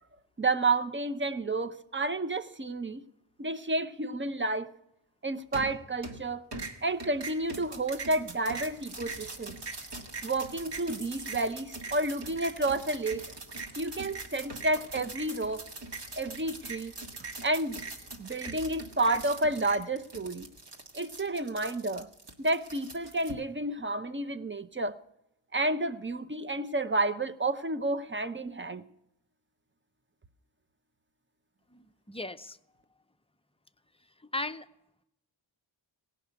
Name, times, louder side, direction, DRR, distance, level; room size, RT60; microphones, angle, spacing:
voice 1, 0.4-3.0 3.4-4.7 5.2-6.4 6.8-9.6 10.2-13.3 13.8-15.6 16.2-16.9 17.4-17.8 18.2-20.5 20.9-22.1 22.4-24.9 25.5-28.8, right 2 dB, 25° right, 0.7 m, -30 dB
sound 1, 5.5-6.2 6.5-23.3, right 3 dB, 60° right, 1.8 m, -42 dB
voice 2, 31.7-32.6 34.3-34.7, left 2 dB, 10° left, 0.6 m, -37 dB
17.5 x 5.9 x 8.1 m
wide cardioid pair, 60°, 47 cm